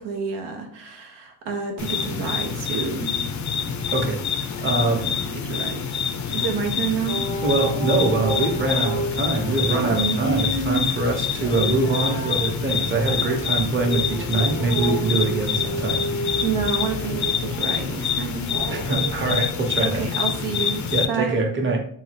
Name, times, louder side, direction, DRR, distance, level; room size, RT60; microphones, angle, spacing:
voice 1, 0.0-3.2 5.0-5.1 5.4-5.8 6.3-7.2 9.7-10.8 16.4-18.5 19.8-21.5, right 5 dB, 90° right, 3 dB, 0.6 m, -28 dB
sound 1, 1.8-21.1, left 7 dB, 45° left, 0.4 m, -27 dB
voice 2, 3.9-5.1 7.4-16.1 18.7-20.0 20.9-21.8, right 2 dB, 30° right, 2 dB, 0.8 m, -24 dB
sound 2, 7.1-19.5, right 2 dB, 65° right, 1.0 m, -32 dB
2.7 x 2.3 x 3.3 m, 0.62 s
cardioid pair, 80°, 42 cm